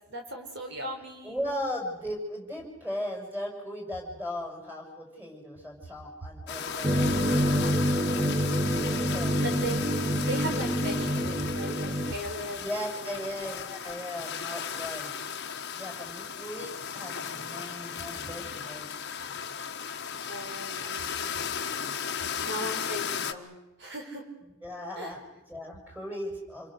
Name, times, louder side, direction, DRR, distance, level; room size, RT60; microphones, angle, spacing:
voice 1, 0.1-1.5 9.4-9.9 10.2-12.6 13.0-13.3 20.3-21.3 22.4-24.3 25.0-25.1, right 1 dB, 50° right, 3 dB, 4.9 m, -37 dB
voice 2, 1.2-8.4 9.0-9.4 12.6-15.1 15.7-18.9 24.6-26.7, equal, 10° right, 1 dB, 6.6 m, -37 dB
sound 1, 6.5-23.3, left 7 dB, 50° left, 1.4 m, -35 dB
sound 2, 6.8-12.1, equal, 25° right, 0.8 m, -27 dB
28.5 x 22.5 x 6.5 m, 0.97 s
head